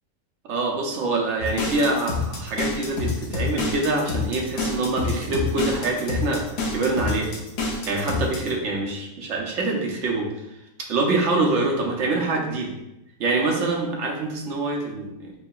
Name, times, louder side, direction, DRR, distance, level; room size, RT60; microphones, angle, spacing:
voice 1, 0.4-6.4 6.7-7.3 7.9-10.3 10.9-12.7 13.2-15.3, right 3 dB, 55° right, 0 dB, 0.9 m, -25 dB
sound 1, 1.4-8.5, left 3 dB, 55° left, 0.8 m, -27 dB
5.7 x 2.7 x 2.3 m, 0.90 s
omnidirectional pair, 1.7 m